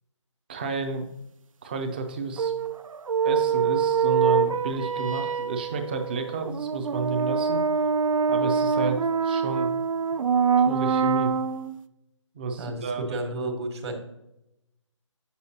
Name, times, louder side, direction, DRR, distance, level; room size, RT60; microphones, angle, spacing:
voice 1, 0.5-1.1 1.6-2.5 3.2-7.6 8.3-9.0 9.2-9.8 10.3-11.3 12.3-13.2, right 4 dB, 20° right, 5 dB, 0.4 m, -31 dB
sound 1, 2.4-11.8, right 6 dB, 90° right, 0.4 m, -25 dB
voice 2, 12.6-13.9, right 2 dB, 55° right, 5 dB, 1.4 m, -32 dB
7.6 x 6.9 x 2.8 m, 0.87 s
figure-of-eight pair, 160°, 17 cm